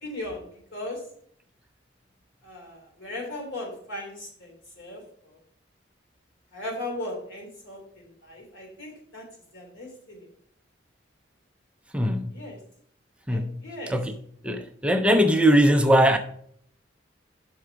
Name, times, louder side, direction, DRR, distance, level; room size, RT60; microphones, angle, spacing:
voice 1, 0.0-1.0 2.4-5.4 6.5-9.3 9.5-10.3 12.3-12.6 13.3-14.0, left 1 dB, 85° left, 3.3 m, -38 dB
voice 2, 11.9-12.4 13.3-13.6 13.9-14.1 14.4-16.2, equal, 5° right, 0.4 m, -20 dB
6.0 x 5.7 x 6.1 m
head